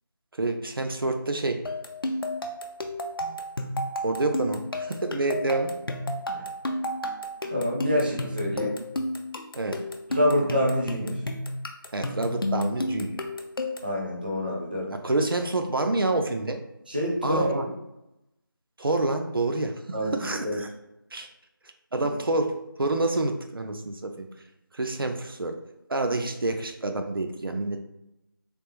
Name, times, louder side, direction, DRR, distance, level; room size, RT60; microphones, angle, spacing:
voice 1, 0.4-1.6 4.0-5.8 9.6-9.8 11.9-13.2 14.9-16.6 17.2-17.6 18.8-20.7 21.1-21.3 21.9-24.3 24.7-25.6 25.9-27.8, right 2 dB, 75° right, 5 dB, 0.5 m, -28 dB
sound 1, 1.7-14.0, left 1 dB, 75° left, 0.5 m, -32 dB
voice 2, 7.5-8.7 10.1-11.2 13.8-14.9 16.9-17.7 19.9-20.6, equal, 25° right, -3 dB, 0.5 m, -26 dB
3.4 x 2.4 x 3.0 m, 0.89 s
figure-of-eight pair, 170°, 12 cm